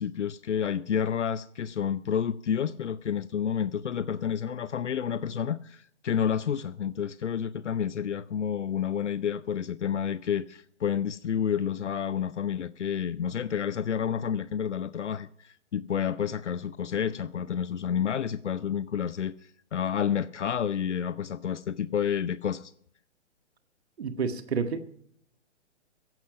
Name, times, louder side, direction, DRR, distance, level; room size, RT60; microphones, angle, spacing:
voice 1, 0.0-22.7, left 8 dB, 75° left, 0.6 m, -30 dB
voice 2, 24.0-24.9, right 5 dB, 60° right, 1.6 m, -29 dB
15.5 x 10.5 x 5.1 m
figure-of-eight pair, 125°, 36 cm